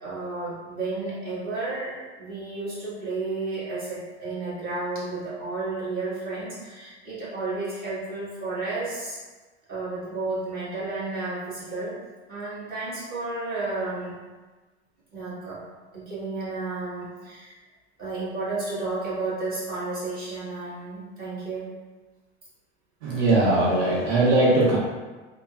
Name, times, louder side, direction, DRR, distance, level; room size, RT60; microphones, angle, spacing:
voice 1, 0.0-9.2 9.7-11.9 12.3-14.2 15.1-15.6 15.9-17.5 18.0-21.7, right 3 dB, 25° right, -9 dB, 1.4 m, -32 dB
voice 2, 23.0-24.8, right 2 dB, 80° right, -4 dB, 0.7 m, -20 dB
3.1 x 2.1 x 2.3 m, 1.3 s
hypercardioid pair, 105°, 34 cm